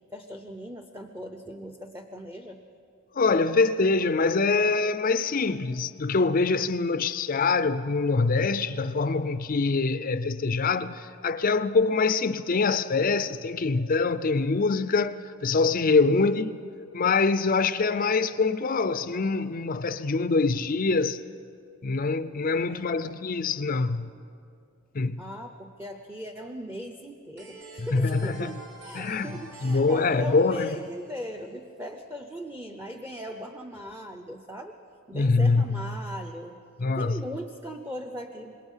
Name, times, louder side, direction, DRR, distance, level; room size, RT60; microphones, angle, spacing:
voice 1, 0.1-2.6 22.7-23.1 25.2-34.8 35.1-36.6 36.9-38.6, equal, 10° right, 0.7 m, -39 dB
voice 2, 3.1-16.6 16.9-21.2 21.8-24.1 24.9-25.2 27.8-28.6 28.9-29.4 29.6-30.7 35.1-36.0 36.8-37.2, left 4 dB, 40° left, 0.5 m, -24 dB
sound 1, 27.4-32.0, right 2 dB, 55° right, 3.3 m, -47 dB
26.5 x 21.5 x 5.6 m
head